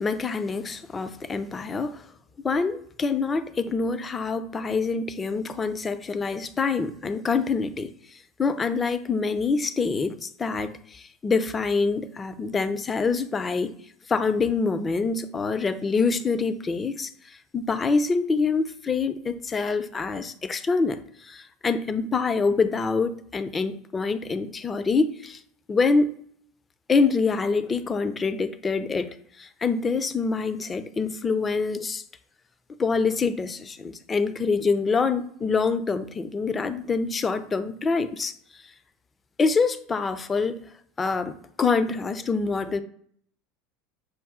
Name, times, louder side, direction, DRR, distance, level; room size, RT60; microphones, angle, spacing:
voice 1, 0.0-2.0 2.4-7.9 8.4-13.7 14.1-25.4 25.7-26.1 26.9-32.0 32.8-38.3 39.4-40.6 41.0-42.8, left 4 dB, 25° left, 0.5 m, -25 dB
6.3 x 2.3 x 3.6 m
hypercardioid pair, 90°, 0 cm